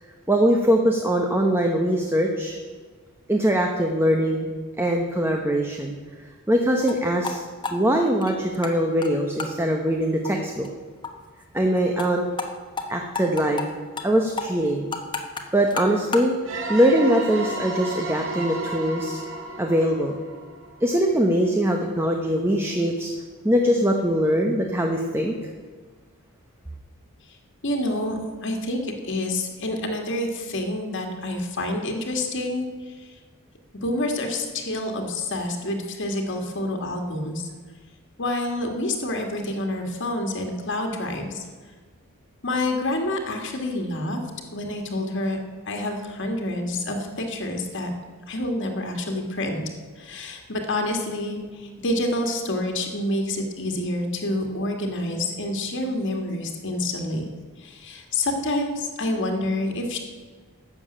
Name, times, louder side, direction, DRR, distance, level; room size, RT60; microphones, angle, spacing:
voice 1, 0.3-2.6 3.3-4.5 4.8-6.0 6.5-7.4 7.7-10.7 11.5-12.2 12.9-13.6 14.0-14.9 15.5-16.3 16.7-19.2 19.6-20.2 20.8-23.1 23.4-25.3, equal, 10° right, 2 dB, 0.9 m, -22 dB
sound 1, 6.8-7.0 7.2-7.4 7.6-8.7 9.0-9.1 9.4-9.5 9.9-10.0 10.2-10.3 10.6-10.7 11.0-11.1 11.4-11.5 11.8-12.1 12.4-12.5 12.8-12.9 13.1-13.7 14.0-14.1 14.4-16.3, left 4 dB, 20° left, 1.2 m, -31 dB
sound 2, 16.4-21.0, right 2 dB, 65° right, 2.1 m, -33 dB
voice 2, 27.6-33.1 33.7-37.5 38.2-41.4 42.4-44.2 44.5-45.4 45.7-47.9 48.3-49.6 50.0-57.3 57.6-60.0, left 1 dB, 60° left, 3 dB, 1.8 m, -28 dB
12.0 x 7.1 x 8.7 m, 1.5 s
head